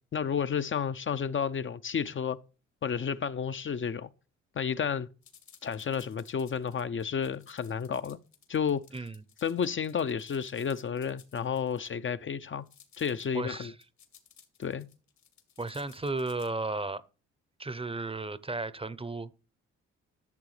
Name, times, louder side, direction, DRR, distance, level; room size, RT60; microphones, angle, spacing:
voice 1, 0.1-2.4 2.8-4.1 4.6-5.1 5.6-8.2 8.5-8.8 9.4-12.6 13.0-13.7 14.6-14.9, left 7 dB, 40° left, 0.6 m, -31 dB
sound 1, 5.2-11.9 12.7-13.3 13.6-16.5, left 8 dB, 70° left, 2.0 m, -58 dB
voice 2, 13.3-13.7 15.6-17.0 17.6-19.3, right 3 dB, 20° right, 0.7 m, -34 dB
12.0 x 6.8 x 3.3 m
supercardioid pair, 55°, 30 cm